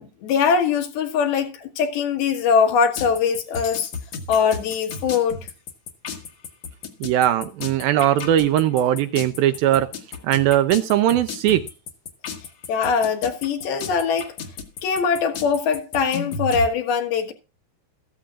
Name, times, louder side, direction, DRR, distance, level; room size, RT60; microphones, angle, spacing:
voice 1, 0.0-3.9 4.3-5.5 12.7-14.3 14.8-17.3, left 6 dB, 70° left, 3.4 m, -22 dB
sound 1, 3.0-16.7, left 5 dB, 55° left, 2.0 m, -34 dB
voice 2, 7.0-9.9 10.2-11.6, right 12 dB, 75° right, 2.3 m, -19 dB
14.0 x 14.0 x 2.5 m
omnidirectional pair, 4.6 m